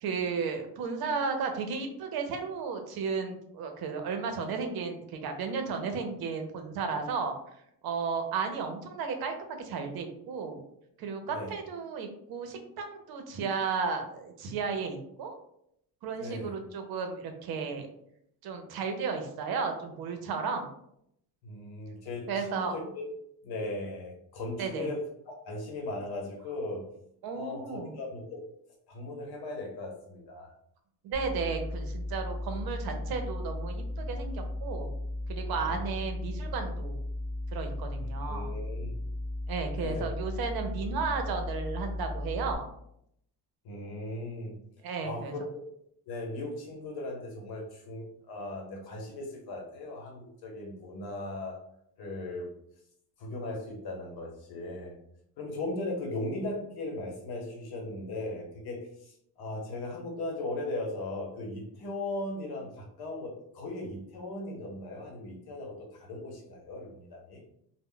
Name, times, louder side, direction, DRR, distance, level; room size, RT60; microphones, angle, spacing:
voice 1, 0.0-7.4 7.8-10.6 11.0-15.4 16.0-17.9 18.4-20.7 22.3-22.8 24.6-24.9 27.2-27.9 31.0-34.9 35.3-37.0 37.5-38.5 39.5-42.7 44.8-45.3, right 5 dB, 70° right, 5 dB, 0.6 m, -34 dB
voice 2, 11.3-11.6 16.1-16.6 21.4-23.1 23.4-25.0 25.4-26.8 27.3-28.4 28.9-30.5 35.6-35.8 38.0-38.9 39.7-40.1 43.6-44.5 45.0-45.4 46.1-51.6 52.0-52.5 53.2-55.0 55.4-67.4, left 2 dB, 75° left, 1 dB, 0.9 m, -38 dB
sound 1, 31.1-42.6, left 1 dB, 25° left, 1.3 m, -35 dB
2.1 x 2.0 x 3.7 m, 0.74 s
cardioid pair, 150°, 38 cm